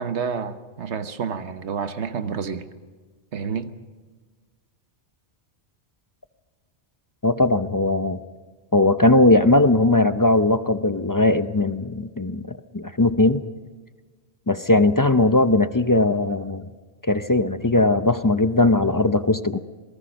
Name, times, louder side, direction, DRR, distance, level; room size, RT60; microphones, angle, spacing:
voice 1, 0.0-2.7 3.3-3.8, right 6 dB, 85° right, 10 dB, 1.3 m, -29 dB
voice 2, 7.2-8.2 8.7-13.4 14.5-16.7 17.0-19.6, left 2 dB, 25° left, 11 dB, 0.5 m, -19 dB
27.0 x 19.0 x 5.3 m, 1.4 s
omnidirectional pair, 1.1 m